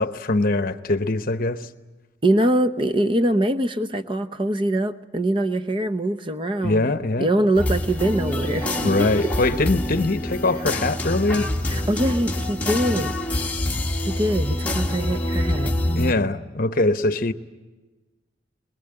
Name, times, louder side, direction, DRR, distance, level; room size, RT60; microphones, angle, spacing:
voice 1, 0.0-1.7 6.6-7.3 8.8-11.5 16.0-17.3, left 2 dB, 50° left, 0.9 m, -22 dB
voice 2, 2.2-9.1 11.7-13.1 14.0-15.7, right 1 dB, 25° right, 0.8 m, -23 dB
sound 1, 7.5-16.1, left 1 dB, 10° left, 1.6 m, -26 dB
23.0 x 21.5 x 8.8 m
head